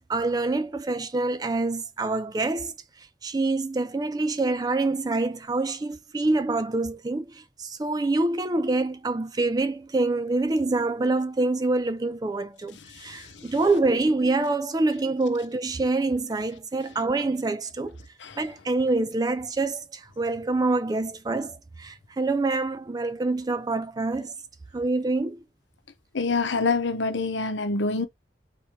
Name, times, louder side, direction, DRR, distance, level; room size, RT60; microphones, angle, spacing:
voice 1, 0.1-2.7 3.2-7.3 7.6-18.0 18.4-24.3 24.7-25.4, right 2 dB, 20° right, 0.4 m, -26 dB
voice 2, 26.1-28.1, left 4 dB, 85° left, 0.8 m, -25 dB
4.1 x 3.0 x 3.3 m
head